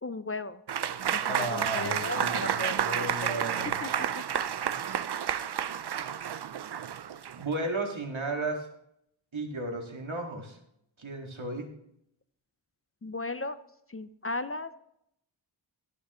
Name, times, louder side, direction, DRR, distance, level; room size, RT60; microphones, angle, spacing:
voice 1, 0.0-0.6 1.1-3.1 3.3-3.4 3.8-4.1 5.0-5.1 13.0-13.6 13.9-14.7, left 2 dB, 30° left, 12 dB, 0.5 m, -36 dB
Applause / Crowd, 0.7-7.5, right 9 dB, 60° right, 0.5 m, -31 dB
voice 2, 1.2-3.8 7.4-8.7 9.3-10.6 11.0-11.7, right 2 dB, 75° right, 2 dB, 1.9 m, -34 dB
13.5 x 9.7 x 3.0 m, 0.74 s
wide cardioid pair, 55°, 47 cm